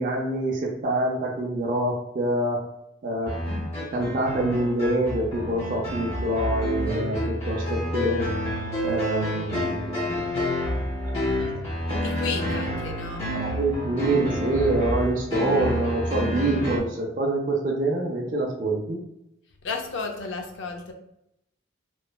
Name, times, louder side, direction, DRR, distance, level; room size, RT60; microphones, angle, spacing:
voice 1, 0.0-2.6 3.0-8.3 8.8-10.2 11.0-11.3 11.9-12.0 13.3-19.0, right 2 dB, 45° right, -3 dB, 0.4 m, -26 dB
sound 1, 3.3-16.8, left 1 dB, 35° left, 0.8 m, -29 dB
voice 2, 12.0-13.3 19.6-20.9, left 4 dB, 70° left, 4 dB, 0.5 m, -33 dB
3.0 x 2.1 x 2.2 m, 0.81 s
head